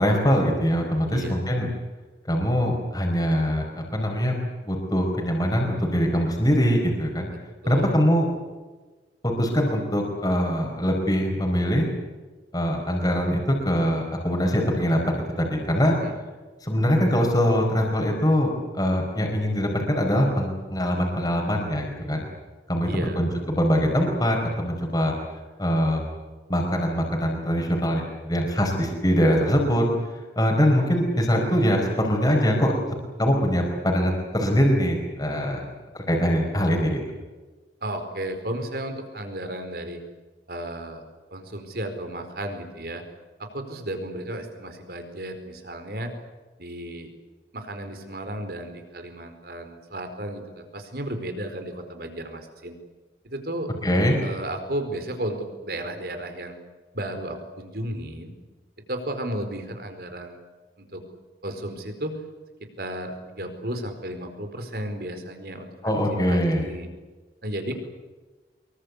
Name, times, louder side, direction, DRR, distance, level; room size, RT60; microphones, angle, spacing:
voice 1, 0.0-1.7 2.3-4.3 4.6-7.3 7.7-8.3 9.4-11.9 12.5-15.9 16.6-22.3 22.7-25.1 25.6-26.0 26.5-29.9 30.4-32.7 33.2-35.6 35.9-37.0 53.8-54.2 65.8-66.7, equal, 20° left, 0 dB, 4.8 m, -23 dB
voice 2, 1.1-1.4 7.6-8.0 16.0-16.1 22.8-23.2 35.3-35.6 37.8-40.0 40.5-41.0 41.3-43.0 43.4-46.1 46.6-47.1 47.5-52.8 53.2-53.7 54.2-56.6 56.9-58.3 58.9-60.4 60.8-61.0 61.4-62.2 62.6-65.9 66.3-66.9 67.4-67.7, right 1 dB, 60° right, 7 dB, 4.7 m, -34 dB
25.0 x 23.0 x 8.4 m, 1.3 s
head